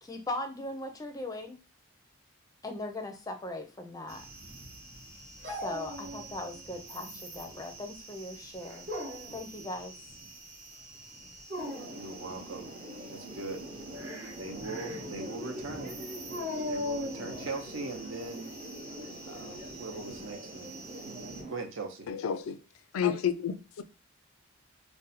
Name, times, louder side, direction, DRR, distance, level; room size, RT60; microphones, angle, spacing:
voice 1, 0.0-1.6 2.6-4.2 5.6-8.9 9.3-9.9, left 2 dB, 15° left, 0.4 m, -39 dB
sound 1, 4.1-21.4, right 2 dB, 85° right, 1.1 m, -48 dB
Dog, 5.4-6.6 6.9-7.6 8.7-9.4 11.4-12.0 16.3-17.6, left 1 dB, 50° right, 1.0 m, -37 dB
sound 2, 11.6-21.5, equal, 30° right, 0.6 m, -44 dB
voice 2, 11.9-12.7 13.1-13.7 14.4-16.0 16.6-18.6 19.2-20.7 21.5-22.1, right 3 dB, 70° right, 0.7 m, -40 dB
voice 3, 22.1-22.6 22.9-23.8, left 8 dB, 80° left, 0.4 m, -30 dB
2.6 x 2.1 x 4.0 m
head